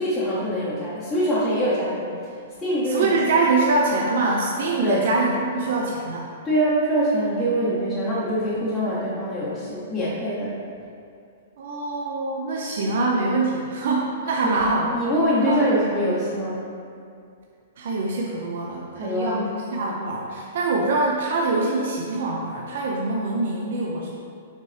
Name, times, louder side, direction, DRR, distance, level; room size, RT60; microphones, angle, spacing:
voice 1, 0.0-3.1 4.8-5.0 6.4-10.6 14.3-14.6 14.9-16.6 19.0-19.4, equal, 5° left, -10 dB, 0.7 m, -24 dB
voice 2, 2.9-6.3 11.6-14.9 15.4-15.6 17.8-24.1, right 3 dB, 55° right, -2 dB, 0.6 m, -24 dB
6.5 x 4.7 x 3.3 m, 2.4 s
hypercardioid pair, 175°, 0 cm